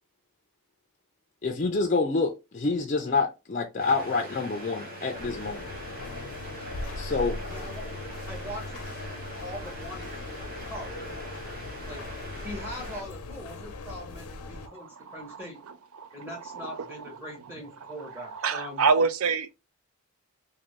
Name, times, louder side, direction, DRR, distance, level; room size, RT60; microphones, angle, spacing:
voice 1, 1.4-5.7 7.0-7.4, left 3 dB, 35° left, 0.4 m, -27 dB
sound 1, 3.8-13.0, right 1 dB, 40° right, 0.8 m, -42 dB
sound 2, 5.2-14.7, left 2 dB, 90° left, 0.5 m, -39 dB
voice 2, 7.4-7.9 8.1-8.7 9.4-10.2 10.7-11.3 11.9-12.0 12.4-15.6 16.1-18.9, equal, 10° right, 1.0 m, -41 dB
voice 3, 14.7-15.4 15.9-17.2 17.8-19.5, right 5 dB, 75° right, 0.4 m, -29 dB
2.6 x 2.6 x 3.0 m
head